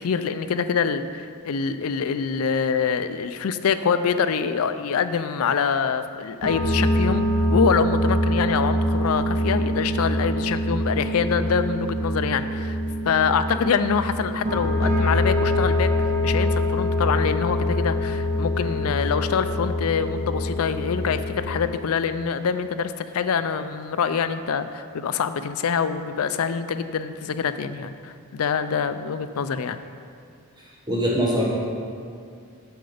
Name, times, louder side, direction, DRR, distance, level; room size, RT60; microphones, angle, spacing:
voice 1, 0.0-7.2 7.5-12.8 13.0-15.9 16.2-29.8, left 6 dB, 80° left, 11 dB, 0.4 m, -25 dB
sound 1, 6.4-21.6, left 1 dB, 60° right, 2.1 m, -24 dB
voice 2, 30.6-31.4, equal, 20° right, -4 dB, 1.1 m, -23 dB
7.9 x 6.8 x 5.0 m, 2.3 s
head